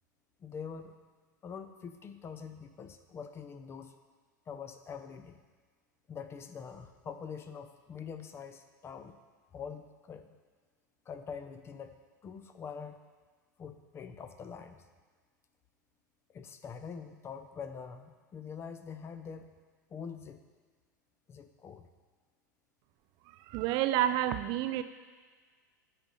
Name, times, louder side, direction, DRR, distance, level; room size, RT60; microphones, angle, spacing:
voice 1, 0.4-0.9 1.4-3.9 4.5-5.4 6.1-9.2 9.5-10.3 11.1-12.0 12.2-13.0 13.6-14.8 16.3-19.6 19.9-20.4 21.3-21.9, left 6 dB, 25° left, 9 dB, 0.6 m, -44 dB
voice 2, 23.4-24.8, right 12 dB, 45° right, 12 dB, 0.4 m, -29 dB
9.0 x 4.9 x 5.4 m, 1.5 s
hypercardioid pair, 95°, 10 cm